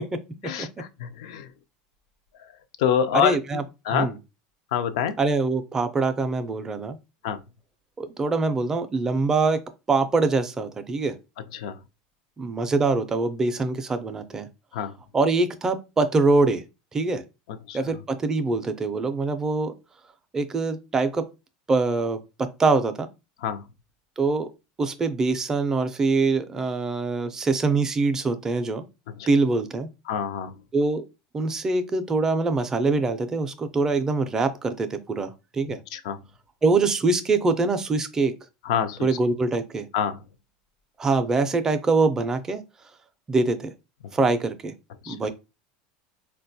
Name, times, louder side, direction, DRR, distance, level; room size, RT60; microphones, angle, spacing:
voice 1, 0.4-1.5 2.8-4.1 4.7-5.2 7.2-7.4 11.5-11.7 14.7-14.9 17.7-17.8 23.4-23.6 29.2-29.3 30.1-30.5 35.9-36.2 38.7-39.0 39.9-40.2 45.0-45.1, left 8 dB, 85° left, 0.4 m, -26 dB
voice 2, 3.1-3.6 3.9-4.2 5.2-7.0 8.0-9.6 9.9-11.2 12.4-14.5 15.1-16.6 16.9-17.2 17.7-19.7 20.3-21.3 21.7-22.2 22.6-23.1 24.2-24.5 24.8-28.8 29.3-29.9 30.7-31.0 31.3-35.8 36.6-38.3 39.0-39.9 41.0-42.6 43.3-43.7 44.1-44.7 45.1-45.3, right 3 dB, 15° right, 0.4 m, -24 dB
4.0 x 2.2 x 2.6 m
supercardioid pair, 140°, 3 cm